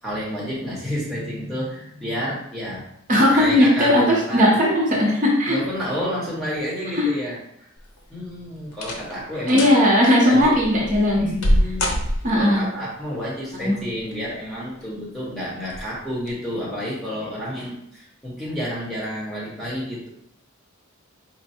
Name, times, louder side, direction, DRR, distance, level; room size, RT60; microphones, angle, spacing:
voice 1, 0.0-2.8 3.3-4.7 5.5-7.4 8.1-9.6 10.2-10.7 11.1-11.9 12.3-20.1, equal, ahead, -7 dB, 1.1 m, -30 dB
voice 2, 3.1-5.6 6.9-7.1 9.5-11.3 12.2-12.6 13.5-13.7, left 1 dB, 40° right, -4 dB, 0.9 m, -17 dB
sound 1, 7.8-8.2 8.7-9.2 9.5-9.8 10.4-12.6 13.8-14.3 14.8-14.9 15.6-15.8 16.2-16.3, equal, 80° left, 0.8 m, -25 dB
4.3 x 2.2 x 4.3 m, 0.72 s
head